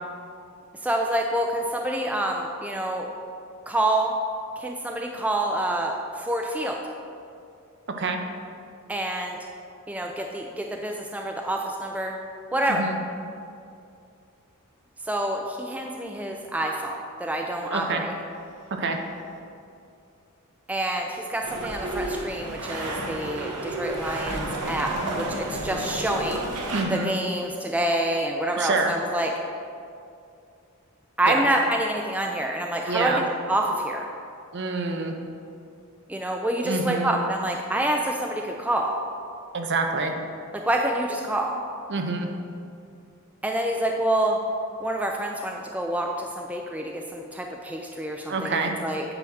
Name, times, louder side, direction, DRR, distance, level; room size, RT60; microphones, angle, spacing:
voice 1, 0.8-3.1 3.7-4.1 4.6-6.8 8.9-9.4 9.9-12.2 12.5-12.9 15.0-18.1 20.7-24.9 25.2-26.5 26.9-29.3 31.2-34.1 36.1-38.9 40.6-41.5 43.4-44.4 44.8-49.0, right 1 dB, 5° right, 1 dB, 0.3 m, -27 dB
voice 2, 7.9-8.2 12.7-13.0 17.7-18.0 18.8-19.0 26.7-27.1 28.6-28.9 31.3-31.5 32.9-33.2 34.5-35.2 36.6-37.1 39.5-40.2 41.9-42.3 48.3-48.7, right 3 dB, 50° right, 4 dB, 0.6 m, -26 dB
sound 1, 21.4-26.9, right 2 dB, 90° right, 0.9 m, -31 dB
8.8 x 3.0 x 6.2 m, 2.5 s
head